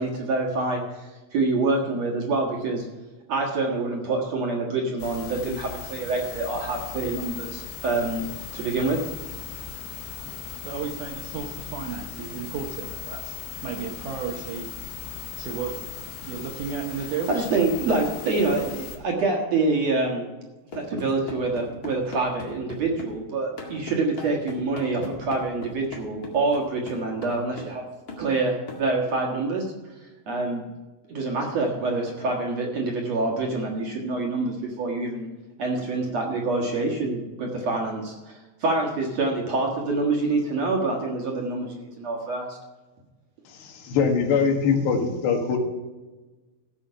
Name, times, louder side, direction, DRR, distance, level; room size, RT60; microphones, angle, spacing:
voice 1, 0.0-2.9 3.3-8.3 8.5-9.0 17.3-20.3 20.7-27.8 28.2-29.7 30.3-30.6 31.1-35.3 35.6-42.6, right 3 dB, 50° right, -1 dB, 2.2 m, -26 dB
sound 1, 5.0-19.0, left 9 dB, 65° left, 2.5 m, -38 dB
voice 2, 10.6-13.3 13.6-14.7 15.4-15.7 16.2-17.3, right 6 dB, 70° right, 2 dB, 2.0 m, -33 dB
sound 2, 20.7-23.2 23.6-27.8 28.1-28.3 28.7-28.9, left 3 dB, 35° left, 1.5 m, -39 dB
voice 3, 43.5-45.6, left 5 dB, 90° left, 3 dB, 3.9 m, -23 dB
16.5 x 6.4 x 5.6 m, 1.2 s
omnidirectional pair, 4.8 m